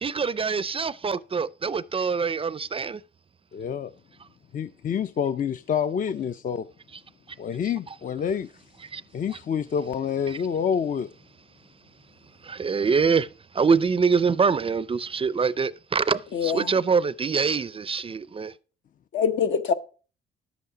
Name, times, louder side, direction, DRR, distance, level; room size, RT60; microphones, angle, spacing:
voice 1, 0.0-3.0 8.9-9.0 10.3-10.4 12.5-13.3 13.6-18.5, right 5 dB, 30° right, 0.4 m, -24 dB
voice 2, 3.5-3.9 4.5-6.7 7.4-8.6 9.1-11.1, left 7 dB, 45° left, 0.5 m, -27 dB
voice 3, 16.3-16.7 19.1-19.7, left 7 dB, 70° left, 1.0 m, -24 dB
10.5 x 8.2 x 4.9 m
cardioid pair, 90°, 20 cm